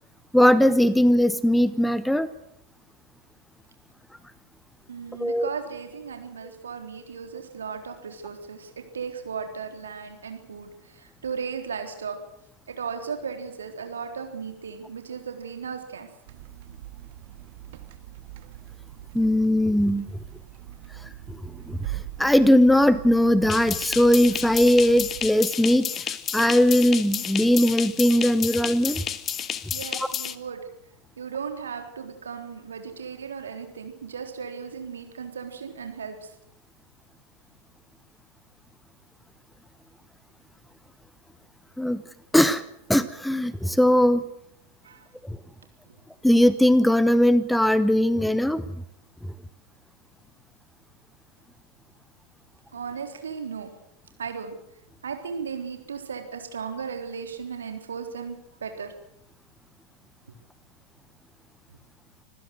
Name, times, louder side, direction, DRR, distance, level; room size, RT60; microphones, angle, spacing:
voice 1, 0.3-2.3 5.2-5.5 19.1-20.1 21.0-29.0 30.0-30.1 41.8-42.0 42.3-42.6 42.9-44.2 45.2-45.4 46.2-48.6, left 1 dB, ahead, 16 dB, 0.9 m, -20 dB
voice 2, 4.9-12.2 12.7-16.1 29.7-30.6 31.2-36.3 44.8-45.1 52.7-53.7 54.2-54.6 55.0-58.9, right 6 dB, 70° right, 5 dB, 3.7 m, -36 dB
sound 1, 16.3-25.3, right 14 dB, 50° right, 1.9 m, -41 dB
sound 2, 23.5-30.3, left 9 dB, 25° left, 1.2 m, -31 dB
26.0 x 15.5 x 8.0 m, 0.76 s
figure-of-eight pair, 90°, 0 cm